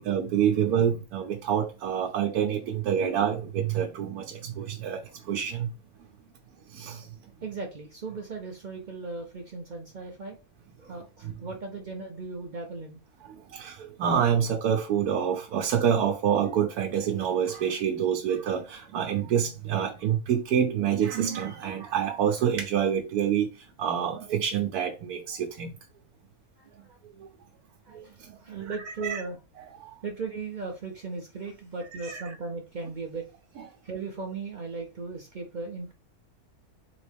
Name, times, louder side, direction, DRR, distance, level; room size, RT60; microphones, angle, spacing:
voice 1, 0.0-5.0 5.3-5.7 6.7-7.1 11.2-11.3 13.5-23.5 23.8-25.7 27.9-28.0 28.7-28.8 29.0-29.2 29.8-29.9 31.9-32.2 33.6-33.7, right 8 dB, 85° right, 1.1 m, -27 dB
voice 2, 7.4-10.4 10.8-13.0 26.6-27.0 27.9-29.4 30.0-33.3 33.8-35.9, right 4 dB, 60° right, 0.5 m, -37 dB
3.7 x 3.1 x 3.3 m
omnidirectional pair, 1.6 m